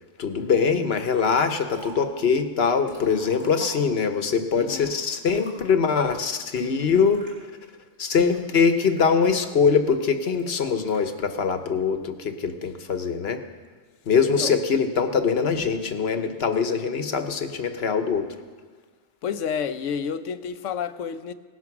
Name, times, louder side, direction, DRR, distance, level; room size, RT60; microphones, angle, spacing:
voice 1, 0.2-7.3 8.0-13.4 14.1-18.3, left 5 dB, 55° left, 8 dB, 1.2 m, -23 dB
Liquid, 1.1-2.2 2.6-4.2 4.6-5.9 6.6-7.3 7.9-9.6 10.4-11.1, right 1 dB, 40° right, 4.8 m, -47 dB
voice 2, 4.6-4.9 14.3-14.5 19.2-21.3, left 7 dB, 80° left, 12 dB, 1.0 m, -30 dB
18.0 x 11.0 x 6.0 m, 1.5 s
omnidirectional pair, 1.3 m